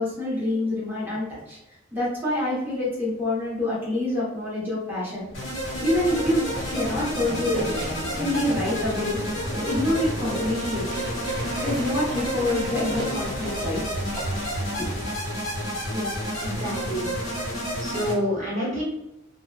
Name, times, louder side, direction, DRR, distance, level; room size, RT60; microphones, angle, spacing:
voice 1, 0.0-1.6 1.9-5.2 5.8-6.4 6.7-7.7 8.1-9.2 9.7-10.9 11.6-13.8 14.7-14.9, left 1 dB, 10° right, -7 dB, 0.8 m, -26 dB
sound 1, 5.2-15.2, right 1 dB, 50° right, 0.6 m, -36 dB
sound 2, 5.3-18.1, equal, 85° left, 0.8 m, -30 dB
sound 3, 5.7-11.6, left 2 dB, 20° left, 0.4 m, -42 dB
voice 2, 15.9-17.1 17.8-18.8, equal, 35° right, -8 dB, 1.3 m, -29 dB
2.7 x 2.0 x 2.3 m, 0.91 s
head